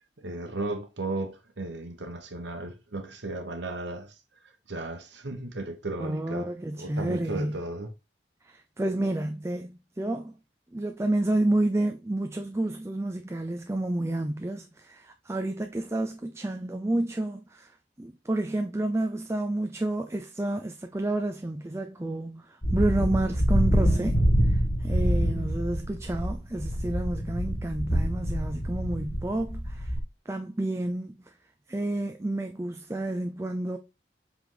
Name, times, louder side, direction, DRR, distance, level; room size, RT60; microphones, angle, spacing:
voice 1, 0.2-4.2 4.7-6.5 6.8-7.9, right 2 dB, 65° right, 1.0 m, -35 dB
voice 2, 6.0-7.6 8.4-10.3 10.7-17.7 18.0-30.0 30.3-31.3 31.7-33.8, right 1 dB, 15° right, 0.4 m, -30 dB
sound 1, 22.6-30.0, equal, 35° left, 2.7 m, -26 dB
7.5 x 3.5 x 3.8 m
head